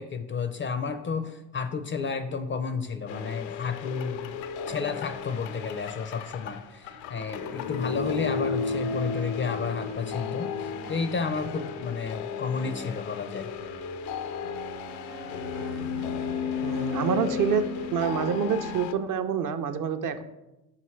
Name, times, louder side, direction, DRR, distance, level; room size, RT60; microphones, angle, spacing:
voice 1, 0.0-4.4 4.7-13.5, left 5 dB, 30° left, 10 dB, 0.4 m, -32 dB
sound 1, 3.1-18.9, left 6 dB, 80° left, 0.5 m, -34 dB
sound 2, 3.1-18.8, right 4 dB, 90° right, 0.7 m, -47 dB
voice 2, 16.6-17.6 17.9-20.2, right 7 dB, 45° right, 9 dB, 0.5 m, -27 dB
5.6 x 5.3 x 3.1 m, 0.99 s
hypercardioid pair, 65°, 45 cm